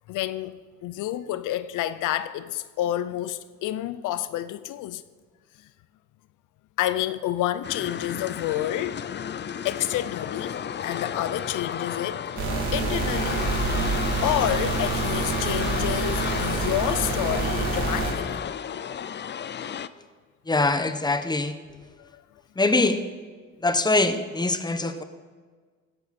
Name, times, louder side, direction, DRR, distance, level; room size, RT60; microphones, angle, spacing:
voice 1, 0.1-5.0 6.8-9.1 9.6-12.2 12.7-13.4 14.2-18.4 22.0-22.2, left 13 dB, 85° left, 0.6 m, -29 dB
sound 1, 7.6-19.9, left 8 dB, 35° left, 0.5 m, -32 dB
sound 2, 12.4-18.1, right 4 dB, 75° right, 3.0 m, -27 dB
voice 2, 20.5-21.6 22.6-23.0 23.6-25.0, left 2 dB, 15° left, 1.0 m, -23 dB
16.0 x 11.0 x 4.3 m
cardioid pair, 90°, 30 cm